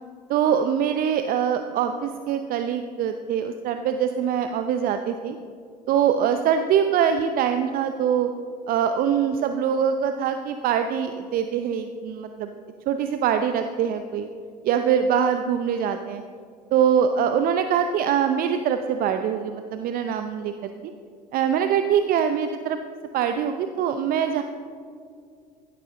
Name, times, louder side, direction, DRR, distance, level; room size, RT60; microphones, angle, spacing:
voice 1, 0.3-5.4 5.9-8.3 8.7-12.5 12.9-14.3 14.6-16.2 16.7-20.5 21.3-22.8 23.1-24.4, right 8 dB, 45° right, 8 dB, 0.7 m, -23 dB
16.0 x 12.0 x 3.8 m, 2.2 s
figure-of-eight pair, 70°, 21 cm